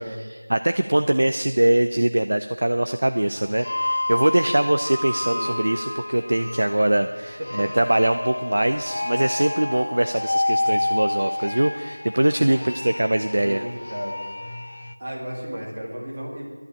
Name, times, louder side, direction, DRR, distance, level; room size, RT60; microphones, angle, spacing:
voice 1, 0.0-13.6, right 1 dB, 35° right, 8 dB, 0.5 m, -22 dB
sound 1, 3.4-14.9, left 1 dB, 30° left, 0.5 m, -29 dB
voice 2, 13.3-14.3 15.0-16.4, equal, 15° right, -5 dB, 2.1 m, -33 dB
12.0 x 11.5 x 8.7 m, 1.3 s
figure-of-eight pair, 175°, 0 cm